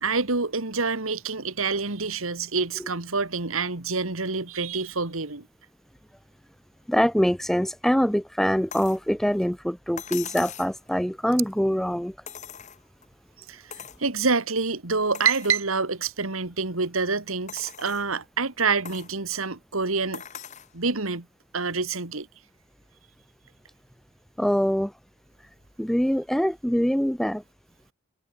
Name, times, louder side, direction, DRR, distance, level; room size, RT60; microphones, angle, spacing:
voice 1, 0.0-5.5 13.5-13.7 14.0-20.2 20.7-21.3 21.5-22.3, right 4 dB, 80° right, 2.3 m, -27 dB
voice 2, 6.9-12.1 24.4-24.9 25.8-27.4, equal, ahead, 0.4 m, -24 dB
sound 1, 8.7-9.0 10.0-10.8 12.3-13.1 13.7-14.0 14.6-14.7 15.1-15.6 16.3-16.4 17.5-18.1 18.9-19.1 20.1-20.7 22.0-22.1, left 8 dB, 35° left, 1.5 m, -40 dB
head